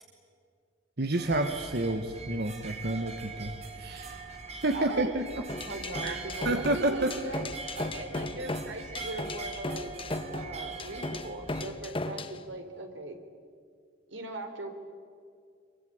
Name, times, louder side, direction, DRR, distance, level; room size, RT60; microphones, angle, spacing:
voice 1, 1.0-4.2 4.6-5.5 6.0-7.2, right 2 dB, 55° right, 6 dB, 1.4 m, -30 dB
sound 1, 1.2-11.6, right 4 dB, 35° right, 3.4 m, -42 dB
voice 2, 4.7-5.1 5.6-7.5 7.8-9.9 10.3-13.2 14.1-14.7, right 2 dB, 75° right, 5 dB, 3.8 m, -39 dB
sound 2, 5.5-12.4, left 2 dB, 30° left, 1.2 m, -36 dB
26.0 x 23.5 x 9.1 m, 2.2 s
head